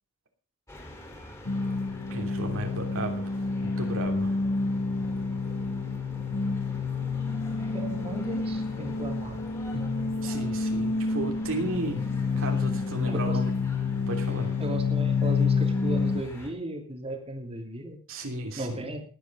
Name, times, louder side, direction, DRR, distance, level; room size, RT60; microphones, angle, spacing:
sound 1, 0.7-16.5, left 1 dB, 15° left, 4.5 m, -47 dB
sound 2, 1.5-16.2, left 4 dB, 60° left, 1.3 m, -28 dB
voice 1, 2.1-3.3 3.6-4.4 10.2-12.0 12.4-13.5 14.1-14.5 18.1-18.9, right 1 dB, 65° right, 3 dB, 3.1 m, -33 dB
voice 2, 7.6-9.4 9.7-9.9 13.0-13.4 14.6-18.0 18.6-19.0, right 1 dB, 30° right, 3 dB, 2.9 m, -36 dB
19.5 x 9.1 x 5.4 m, 0.39 s
head